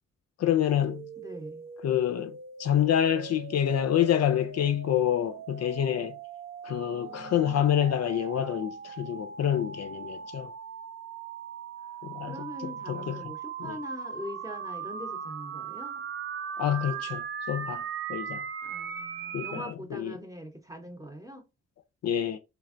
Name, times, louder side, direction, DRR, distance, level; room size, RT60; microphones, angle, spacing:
voice 1, 0.4-1.1 1.8-6.2 6.6-10.5 12.0-12.4 12.9-13.3 13.6-13.8 16.6-18.4 19.3-20.1 22.0-22.4, left 10 dB, 55° left, 0.4 m, -27 dB
sound 1, 0.8-19.7, right 7 dB, 45° right, 0.5 m, -39 dB
voice 2, 1.2-1.7 6.8-7.7 12.2-16.0 18.6-21.5, equal, 10° right, 0.8 m, -42 dB
3.4 x 3.2 x 2.5 m
cardioid pair, 65°, 30 cm